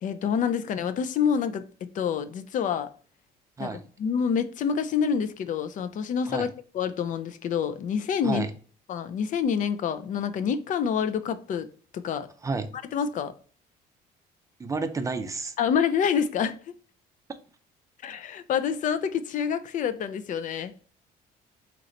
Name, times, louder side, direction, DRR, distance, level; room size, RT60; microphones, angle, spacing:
voice 1, 0.0-1.6 1.9-2.9 3.6-3.7 4.0-6.5 6.7-8.4 8.9-12.3 12.9-13.3 15.6-16.6 18.0-20.7, left 7 dB, 50° left, 0.5 m, -27 dB
voice 2, 14.6-15.5, right 4 dB, 20° right, 0.5 m, -30 dB
3.8 x 2.9 x 3.1 m
cardioid pair, 110°, 17 cm